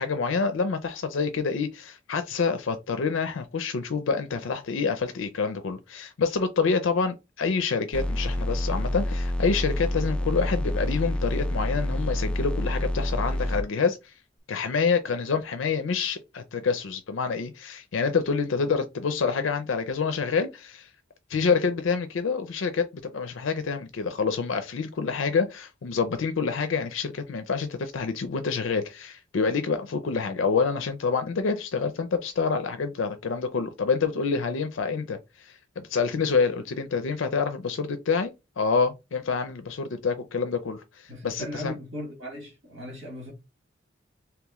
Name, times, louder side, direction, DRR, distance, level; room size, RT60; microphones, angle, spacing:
voice 1, 0.0-14.1 14.5-20.9 21.3-41.7, left 5 dB, 75° left, 0.5 m, -27 dB
sound 1, 7.9-13.6, left 1 dB, 5° left, 0.4 m, -28 dB
voice 2, 41.1-43.3, equal, 85° right, 1.6 m, -38 dB
3.4 x 3.0 x 3.5 m
head